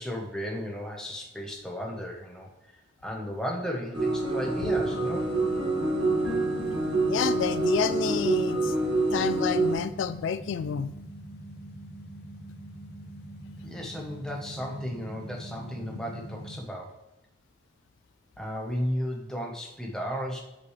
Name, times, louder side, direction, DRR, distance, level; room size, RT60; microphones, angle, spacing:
voice 1, 0.0-5.3 13.6-17.0 18.4-20.4, equal, 5° left, -1 dB, 0.9 m, -34 dB
sound 1, 3.9-9.7, right 2 dB, 85° right, 1.7 m, -26 dB
sound 2, 4.7-16.6, right 1 dB, 55° left, 0.7 m, -43 dB
voice 2, 7.1-8.7 9.1-10.9, left 7 dB, 75° left, 13 dB, 0.3 m, -29 dB
6.4 x 5.8 x 3.2 m, 0.96 s
head